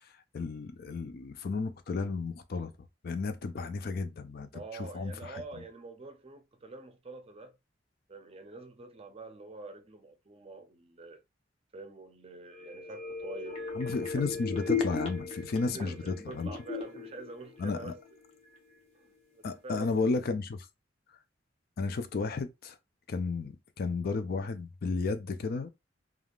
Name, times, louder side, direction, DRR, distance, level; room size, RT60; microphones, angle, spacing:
voice 1, 0.3-2.7 3.0-5.4 13.7-16.5 17.6-17.9 19.4-20.7 21.8-22.8 23.1-25.7, left 4 dB, 55° left, 0.4 m, -33 dB
voice 2, 4.5-7.5 8.1-11.2 11.7-13.7 14.1-14.3 15.7-18.0 18.9-19.1 19.3-20.1, right 3 dB, 35° right, 0.5 m, -46 dB
sound 1, 12.5-18.2 18.5-18.6, left 4 dB, 35° left, 0.9 m, -36 dB
3.4 x 2.3 x 2.3 m
head